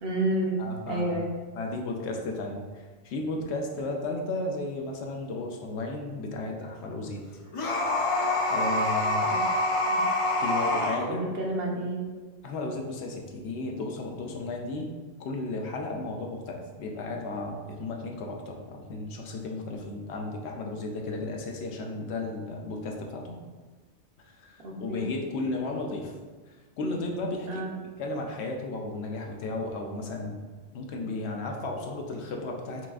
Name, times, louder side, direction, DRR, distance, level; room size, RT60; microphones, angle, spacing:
voice 1, 0.0-0.6 0.9-1.3 9.2-9.4 9.9-10.0 11.1-12.0 24.6-25.1 27.5-27.7, right 1 dB, 60° right, -2 dB, 0.9 m, -30 dB
voice 2, 0.6-1.2 1.5-7.2 8.5-9.3 10.4-11.2 12.4-14.9 15.2-23.4 24.2-26.1 26.8-27.7 28.0-30.4 30.7-32.9, left 2 dB, 75° left, 1 dB, 0.8 m, -34 dB
sound 1, 7.5-11.0, left 2 dB, 50° left, 0.4 m, -26 dB
5.7 x 2.4 x 2.3 m, 1.3 s
omnidirectional pair, 1.1 m